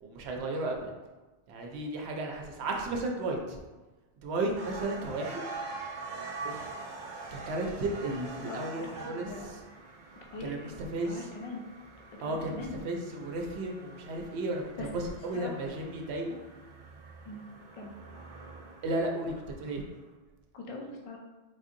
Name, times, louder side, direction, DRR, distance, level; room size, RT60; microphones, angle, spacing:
voice 1, 0.0-0.9 1.5-3.6 4.2-5.4 6.4-6.6 7.3-9.3 10.4-11.2 12.2-16.4 18.8-19.8, right 2 dB, 85° right, 1 dB, 0.8 m, -34 dB
sound 1, 4.6-19.8, right 3 dB, 60° right, 0.6 m, -45 dB
voice 2, 8.5-9.5 10.3-10.8 11.0-11.7 12.2-12.8 14.8-14.9 15.3-15.7 17.3-17.4 17.7-17.9 20.5-21.2, left 2 dB, 45° left, 1 dB, 0.5 m, -42 dB
3.7 x 2.7 x 2.5 m, 1.2 s
omnidirectional pair, 1.1 m